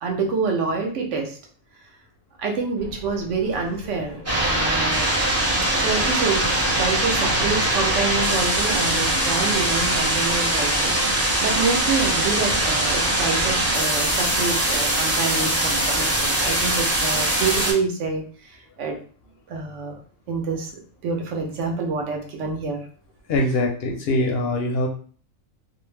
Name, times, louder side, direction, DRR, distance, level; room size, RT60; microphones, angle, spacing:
voice 1, 0.0-1.4 2.4-5.1 5.7-19.0 19.5-20.0 20.3-20.7 21.0-22.8, right 4 dB, 70° right, 1 dB, 1.0 m, -27 dB
sound 1, 2.8-10.2, equal, 45° right, 0.8 m, -39 dB
sound 2, 4.3-17.7, right 1 dB, 20° right, 0.3 m, -22 dB
voice 2, 23.3-24.9, left 2 dB, 65° left, 1 dB, 0.6 m, -22 dB
2.5 x 2.0 x 3.2 m, 0.43 s
omnidirectional pair, 1.4 m